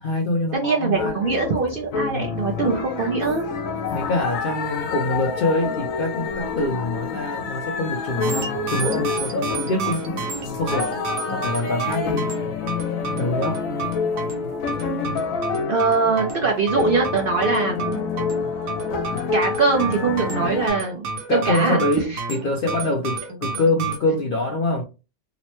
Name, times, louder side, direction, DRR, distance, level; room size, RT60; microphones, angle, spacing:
voice 1, 0.0-1.4 1.9-2.2 3.9-10.2 10.6-10.9 11.3-12.2 13.1-13.6 21.3-24.8, left 2 dB, 60° left, 1 dB, 0.5 m, -25 dB
voice 2, 0.5-3.5 15.7-18.0 19.3-21.8 22.1-22.2, right 4 dB, 60° right, 0 dB, 0.6 m, -22 dB
sound 1, 0.9-20.7, left 5 dB, 80° left, 1.0 m, -28 dB
sound 2, 8.2-24.0, right 4 dB, 80° right, 1.1 m, -31 dB
2.9 x 2.1 x 2.9 m, 0.29 s
omnidirectional pair, 1.4 m